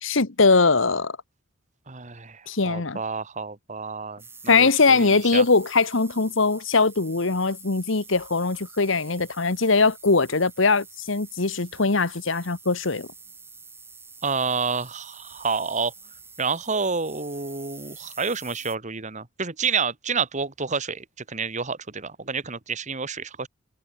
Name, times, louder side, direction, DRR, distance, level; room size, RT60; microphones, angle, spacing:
voice 1, 0.0-1.1 2.5-3.0 4.5-13.1, left 4 dB, 65° left, 1.3 m, -21 dB
voice 2, 1.9-5.4 14.2-15.9 16.4-23.5, right 5 dB, 35° right, 1.9 m, -29 dB
sound 1, 4.2-18.7, right 4 dB, 10° right, 5.2 m, -47 dB
head